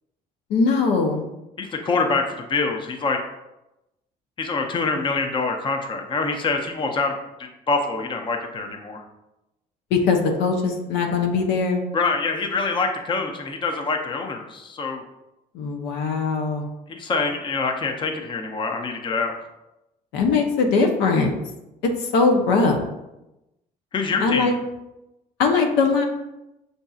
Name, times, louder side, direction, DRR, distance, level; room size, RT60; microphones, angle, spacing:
voice 1, 0.5-1.3 9.9-11.8 15.5-16.7 20.1-21.3 22.1-22.8 24.2-24.5 25.4-26.0, left 4 dB, 90° left, 3 dB, 0.6 m, -20 dB
voice 2, 1.6-3.2 4.4-9.0 11.9-15.0 16.9-19.3 23.9-24.6, left 4 dB, 30° left, 3 dB, 0.5 m, -25 dB
6.3 x 2.6 x 2.3 m, 0.94 s
cardioid pair, 110°, 17 cm